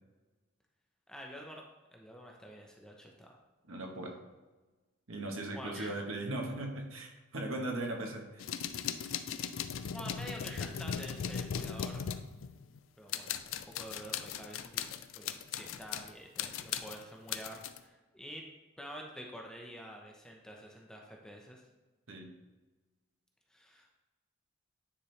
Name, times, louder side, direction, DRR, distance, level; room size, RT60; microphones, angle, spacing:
voice 1, 1.1-1.6 1.9-3.4 5.5-5.9 9.7-12.0 13.0-18.4 18.8-21.6 23.5-23.9, equal, 5° left, 0 dB, 0.7 m, -48 dB
voice 2, 3.7-4.1 5.1-8.5 22.1-22.3, right 2 dB, 80° right, 2 dB, 1.2 m, -38 dB
sound 1, 8.4-12.8 13.1-16.1 16.4-17.8, left 8 dB, 75° left, 0.4 m, -38 dB
9.7 x 4.3 x 3.2 m, 1.2 s
head